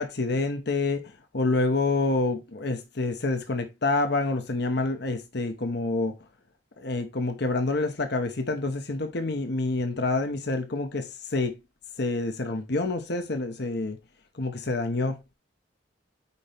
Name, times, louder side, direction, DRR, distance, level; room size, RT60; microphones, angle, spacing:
voice 1, 0.0-6.2 6.8-11.5 12.0-14.0 14.4-15.2, left 3 dB, 65° left, 1.1 m, -27 dB
9.5 x 4.3 x 3.4 m
head